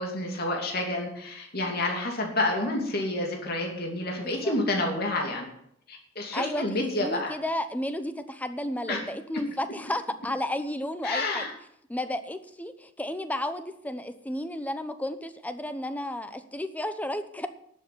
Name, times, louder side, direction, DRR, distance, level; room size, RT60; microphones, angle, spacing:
voice 1, 0.0-5.5 5.9-7.3 8.9-9.0 11.0-11.5, left 2 dB, 50° left, 1 dB, 2.7 m, -29 dB
voice 2, 4.2-4.6 6.3-6.6 7.0-11.5 11.9-17.5, left 1 dB, 10° left, 10 dB, 0.8 m, -32 dB
11.5 x 7.6 x 7.9 m, 0.72 s
head